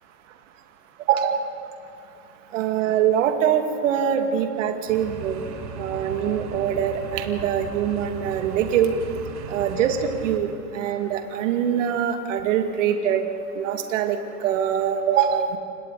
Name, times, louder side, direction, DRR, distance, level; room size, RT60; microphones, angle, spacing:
voice 1, 1.1-1.4 2.5-5.4 5.8-8.9 9.5-10.5 10.7-13.2 13.6-15.6, right 9 dB, 50° right, 5 dB, 2.4 m, -23 dB
sound 1, 4.9-10.4, right 5 dB, 80° right, 3.8 m, -37 dB
29.5 x 27.0 x 4.1 m, 2.7 s
hypercardioid pair, 160°, 49 cm